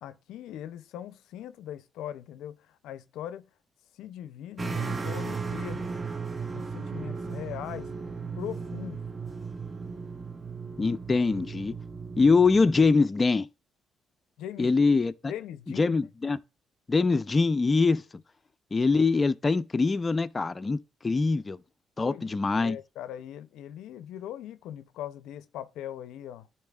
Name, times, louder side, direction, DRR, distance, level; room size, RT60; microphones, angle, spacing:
voice 1, 0.0-3.4 3.9-5.9 6.5-7.9 8.4-9.0 14.4-14.7 15.3-16.1 22.0-22.2 22.6-26.5, left 11 dB, 90° left, 0.4 m, -40 dB
sound 1, 4.6-12.9, right 5 dB, 25° right, 0.6 m, -36 dB
voice 2, 10.8-11.7 12.2-13.5 14.6-15.3 15.8-16.4 16.9-18.0 18.7-20.8 21.0-21.6 22.0-22.8, left 4 dB, 30° left, 0.4 m, -23 dB
10.5 x 4.3 x 2.3 m
cardioid pair, 90°, 0 cm